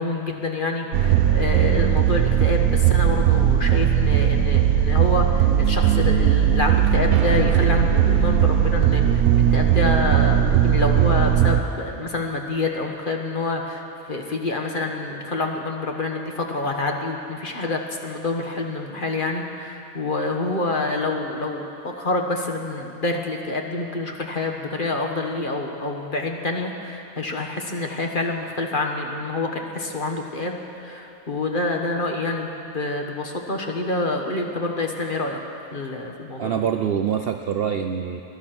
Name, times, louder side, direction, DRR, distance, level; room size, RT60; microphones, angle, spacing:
voice 1, 0.0-9.2 9.5-35.4 35.7-36.6, left 2 dB, 40° left, 2 dB, 1.3 m, -27 dB
sound 1, 0.9-11.6, right 10 dB, 85° right, 1.1 m, -18 dB
voice 2, 36.4-38.2, right 8 dB, 60° right, 6 dB, 0.6 m, -25 dB
19.5 x 12.0 x 6.0 m, 2.7 s
omnidirectional pair, 1.5 m